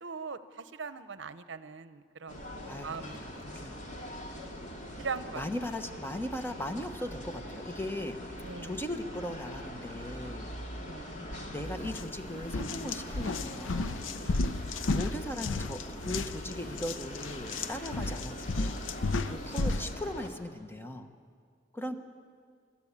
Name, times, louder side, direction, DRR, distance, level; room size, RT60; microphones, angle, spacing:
voice 1, 0.0-2.4 2.8-3.2 3.6-3.8 5.0-5.4 8.4-8.7 10.9-11.5 14.2-14.4 19.3-19.4, right 5 dB, 70° right, 13 dB, 0.7 m, -41 dB
sound 1, 2.3-20.3, equal, 40° left, 2.6 m, -43 dB
voice 2, 2.6-3.9 5.3-10.5 11.5-14.1 14.9-18.8 19.3-21.1 21.7-22.0, left 1 dB, 10° left, 7 dB, 1.1 m, -38 dB
sound 2, 11.8-12.0 12.4-19.9, left 3 dB, 90° left, 0.7 m, -33 dB
26.0 x 13.0 x 8.7 m, 2.1 s
head